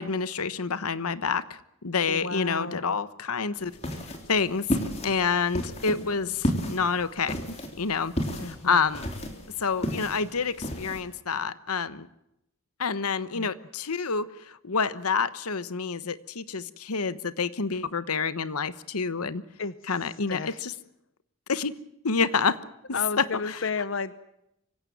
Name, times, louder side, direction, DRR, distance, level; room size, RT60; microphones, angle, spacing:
voice 1, 0.0-3.7 4.3-4.7 5.0-8.1 8.4-9.1 9.6-12.1 12.8-19.4 19.9-20.7 21.5-21.7 22.0-22.6 23.2-23.6, left 5 dB, 90° left, 15 dB, 1.1 m, -28 dB
voice 2, 2.1-2.9 8.4-8.8 13.3-13.5 19.6-19.7 20.3-20.6 22.9-24.1, left 4 dB, 60° left, 15 dB, 0.8 m, -32 dB
sound 1, 3.6-11.0, equal, 30° left, 3.6 m, -33 dB
24.5 x 16.5 x 9.2 m, 0.82 s
head